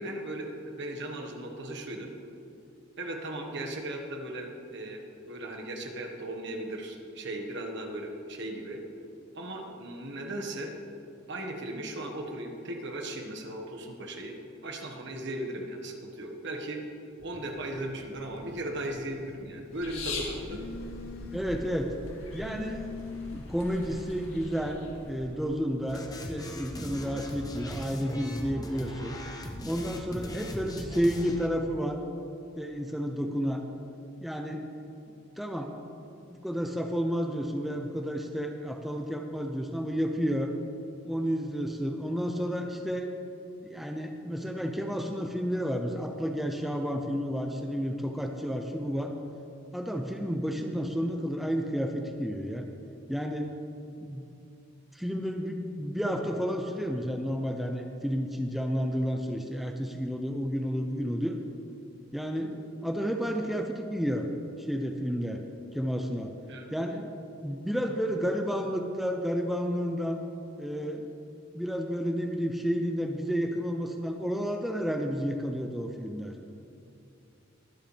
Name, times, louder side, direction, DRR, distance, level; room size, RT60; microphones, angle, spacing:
voice 1, 0.0-2.1 3.0-8.8 9.3-10.7 11.3-14.4 14.6-16.8 17.2-20.7 66.5-66.7, right 1 dB, 60° right, 2 dB, 1.6 m, -37 dB
Telephone, 17.2-25.3, left 3 dB, 50° left, 0.5 m, -45 dB
sound 1, 19.7-25.6, left 3 dB, 90° left, 2.1 m, -42 dB
voice 2, 21.3-22.0 22.3-24.8 25.1-29.2 29.6-32.0 32.6-33.6 34.2-34.9 35.4-35.7 36.2-40.5 41.0-43.1 43.6-49.1 49.7-52.7 53.1-53.5 54.0-54.3 54.9-61.4 62.1-64.3 64.6-65.4 65.7-66.3 66.7-67.1 67.4-70.2 70.6-71.1 71.5-76.3, equal, ahead, 3 dB, 0.6 m, -31 dB
sound 2, 25.9-31.5, left 1 dB, 20° left, 0.9 m, -39 dB
22.0 x 7.9 x 3.4 m, 2.7 s
head